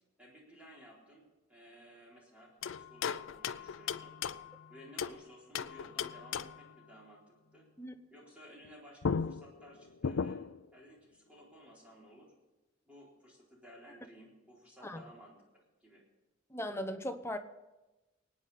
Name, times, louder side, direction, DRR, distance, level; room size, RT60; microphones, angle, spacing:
voice 1, 0.2-4.1 4.7-7.7 8.1-10.4 10.7-12.3 12.9-16.0, equal, 5° right, -4 dB, 4.0 m, -56 dB
sound 1, 2.6-5.2 5.5-6.7 8.6-8.7 9.0-10.7, left 6 dB, 70° left, 0.5 m, -37 dB
voice 2, 16.5-17.4, left 1 dB, 15° left, 7 dB, 0.9 m, -38 dB
23.5 x 9.4 x 4.2 m, 1.1 s
head